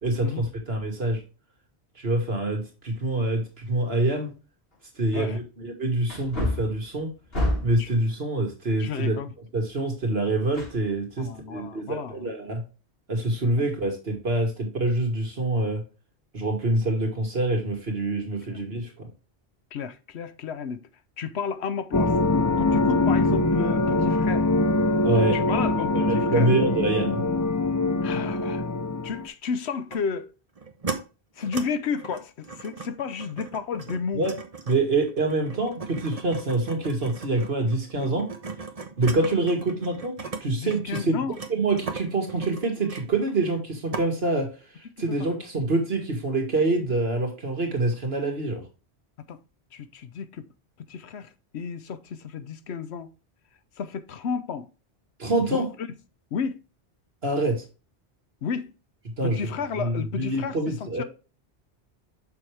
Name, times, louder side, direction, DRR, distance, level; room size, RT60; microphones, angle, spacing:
voice 1, 0.0-1.2 2.0-4.3 5.0-7.1 7.6-9.2 9.5-12.6 13.1-15.8 16.3-19.1 25.0-25.4 25.9-27.2 34.1-34.3 34.7-38.3 39.0-40.2 40.4-41.2 41.5-44.5 45.0-48.6 55.2-55.7 57.2-57.6 59.2-59.5 59.8-61.0, right 2 dB, 65° right, 2.1 m, -26 dB
Wood, 4.7-4.8 6.0-7.9 10.5-11.3 11.7-11.8, left 1 dB, 60° left, 4.3 m, -29 dB
voice 2, 8.8-9.3 11.2-12.3 13.6-13.7 18.5-18.6 19.7-20.9 21.2-22.2 22.6-24.5 25.1-26.5 28.0-28.6 29.0-30.3 31.4-34.3 40.6-41.4 45.1-45.3 49.3-49.4 49.7-50.5 50.9-53.1 53.8-54.7 55.5-55.9 56.3-56.6 58.4-58.7 59.2-61.0, left 6 dB, 75° left, 1.0 m, -32 dB
sound 1, 21.9-29.3, left 2 dB, 30° left, 0.3 m, -23 dB
sound 2, 29.9-30.0 30.6-31.0 31.4-31.6 32.0-40.4 40.7-43.6 43.9-44.1, right 4 dB, 35° right, 1.0 m, -37 dB
6.9 x 6.2 x 3.3 m
omnidirectional pair, 1.1 m